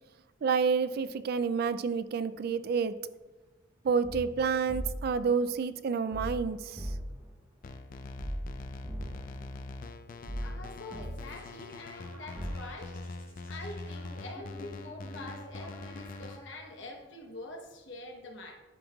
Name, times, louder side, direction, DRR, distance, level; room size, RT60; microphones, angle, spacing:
voice 1, 0.4-3.0 3.8-6.9, right 5 dB, 55° right, 13 dB, 0.3 m, -29 dB
sound 1, 4.0-5.2 6.1-7.3 8.2-9.4 10.3-11.4 12.3-12.5, equal, 10° right, 0.8 m, -38 dB
sound 2, 7.6-16.4, left 2 dB, 45° left, 0.4 m, -43 dB
voice 2, 10.1-13.0 13.5-18.6, left 2 dB, 65° left, 2 dB, 1.0 m, -45 dB
sound 3, 10.9-17.1, equal, 15° left, 1.6 m, -53 dB
11.0 x 5.3 x 2.3 m, 1.2 s
head